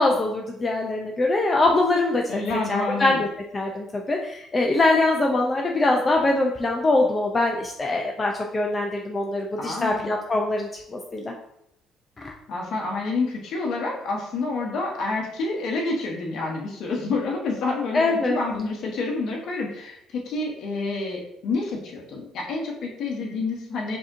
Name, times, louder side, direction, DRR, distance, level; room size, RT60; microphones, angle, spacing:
voice 1, 0.0-2.4 2.7-3.3 3.5-11.3 12.2-12.3 17.9-18.4, left 2 dB, 30° left, 1 dB, 0.5 m, -23 dB
voice 2, 2.3-3.3 9.6-10.1 12.5-24.0, left 3 dB, 65° left, 0 dB, 0.9 m, -28 dB
4.8 x 2.8 x 2.6 m, 0.79 s
supercardioid pair, 80°, 0 cm